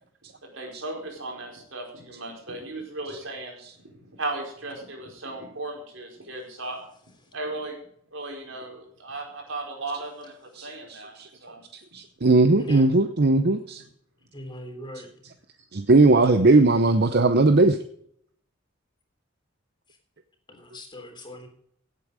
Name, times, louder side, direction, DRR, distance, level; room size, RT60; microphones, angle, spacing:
voice 1, 0.4-3.6 3.8-6.8 7.3-7.8 8.1-11.6, right 2 dB, 75° right, 1 dB, 4.7 m, -36 dB
voice 2, 10.6-11.3 11.9-13.8 15.7-17.8, right 2 dB, 55° right, 9 dB, 0.8 m, -19 dB
voice 3, 12.6-12.9 14.3-15.1 20.5-21.5, equal, 25° left, 3 dB, 3.4 m, -39 dB
17.0 x 8.4 x 5.0 m, 0.66 s
head